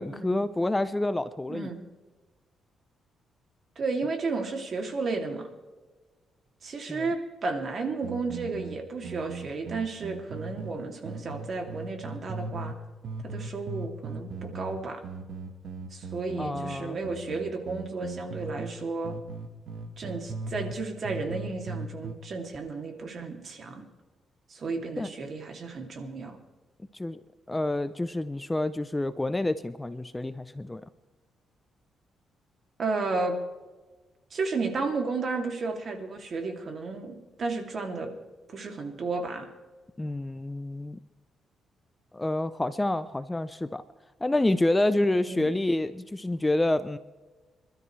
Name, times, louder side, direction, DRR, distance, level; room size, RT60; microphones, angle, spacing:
voice 1, 0.0-1.7 6.9-7.1 16.4-17.0 25.0-25.1 26.9-27.2 27.5-30.8 40.0-41.0 42.1-43.8 44.2-47.0, left 1 dB, 10° left, 13 dB, 0.5 m, -28 dB
voice 2, 1.5-1.8 3.8-5.5 6.6-12.7 13.2-15.0 15.9-19.1 20.0-23.8 24.5-26.4 32.8-33.4 34.3-38.1 38.5-39.5 45.3-45.6, right 3 dB, 45° right, 3 dB, 2.6 m, -33 dB
sound 1, 8.0-10.7 11.0-12.8 13.0-18.7 19.0-20.8 21.0-22.1, right 3 dB, 70° right, 1.4 m, -38 dB
26.0 x 12.5 x 3.2 m, 1.3 s
cardioid pair, 115°, 0 cm